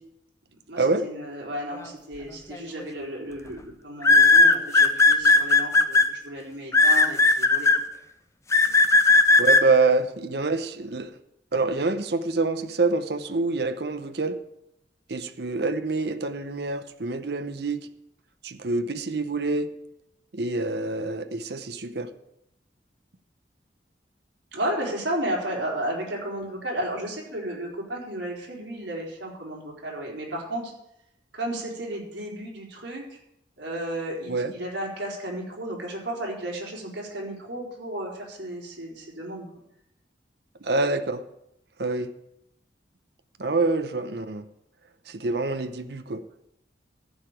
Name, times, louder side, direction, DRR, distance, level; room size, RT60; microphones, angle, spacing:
voice 1, 0.7-7.7 24.5-30.7 31.3-33.2 33.6-39.5, right 1 dB, 80° right, -2 dB, 4.1 m, -33 dB
sound 1, 2.5-2.8 4.0-6.0 6.7-7.8 8.5-9.6, left 3 dB, 15° left, 0.7 m, -16 dB
voice 2, 9.4-11.1 11.5-14.4 15.1-17.9 18.4-19.7 20.3-22.1 34.3-34.5 40.6-41.2 41.8-42.1 43.4-44.5 45.1-46.2, right 3 dB, 65° right, 9 dB, 0.8 m, -26 dB
14.5 x 4.9 x 9.0 m, 0.81 s
head